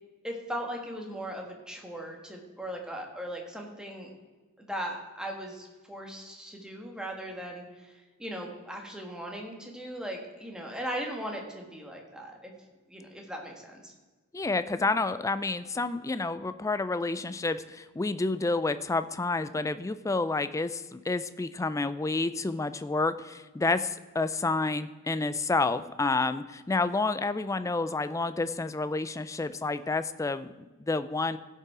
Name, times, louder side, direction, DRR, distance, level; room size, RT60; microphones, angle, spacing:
voice 1, 0.2-4.1 4.6-12.5 12.9-13.9, equal, 5° right, 0 dB, 1.5 m, -38 dB
voice 2, 14.3-30.5 30.8-31.4, left 3 dB, 15° left, 13 dB, 0.3 m, -29 dB
16.0 x 5.5 x 4.8 m, 1.3 s
head